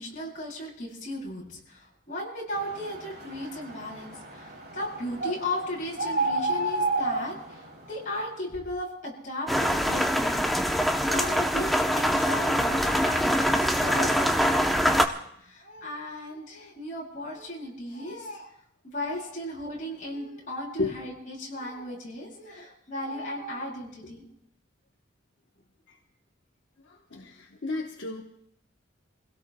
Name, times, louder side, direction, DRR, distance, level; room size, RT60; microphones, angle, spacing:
voice 1, 0.0-15.1 15.4-18.5 18.8-24.2, left 1 dB, 40° left, -4 dB, 6.8 m, -36 dB
sound 1, 2.5-8.1, right 2 dB, 55° right, 3.1 m, -32 dB
sound 2, 9.5-15.1, equal, ahead, 0.7 m, -24 dB
voice 2, 26.8-28.2, left 3 dB, 70° left, 0 dB, 1.1 m, -33 dB
28.5 x 17.0 x 2.2 m, 0.71 s
head